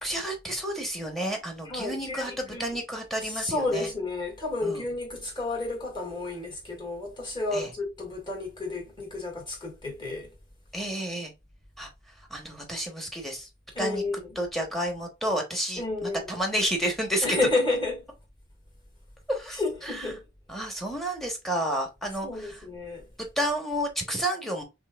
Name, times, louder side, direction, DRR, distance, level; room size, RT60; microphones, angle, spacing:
voice 1, 0.0-3.9 4.6-4.8 7.5-7.7 10.7-11.3 11.8-11.9 12.3-13.5 13.8-14.0 14.4-17.3 19.3-20.2 20.5-22.6 23.4-24.6, right 1 dB, ahead, 1.0 m, -31 dB
voice 2, 1.6-2.8 3.2-10.3 13.7-14.4 15.8-16.3 17.2-18.0 19.6-20.2 22.2-23.1, left 2 dB, 25° left, 1.8 m, -31 dB
5.5 x 2.5 x 2.3 m
head